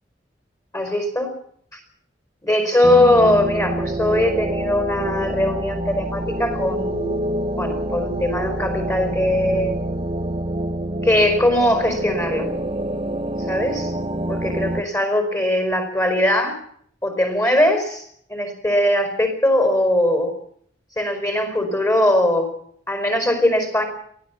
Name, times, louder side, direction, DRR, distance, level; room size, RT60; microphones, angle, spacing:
voice 1, 0.7-1.3 1.7-1.8 2.4-7.2 7.6-9.8 11.0-12.5 13.5-13.9 14.3-16.6 17.0-20.3 21.0-22.5 22.9-23.8, left 1 dB, 20° left, 6 dB, 4.9 m, -20 dB
sound 1, 2.8-14.8, right 1 dB, 30° right, 1.0 m, -27 dB
23.5 x 15.5 x 7.2 m, 0.62 s
head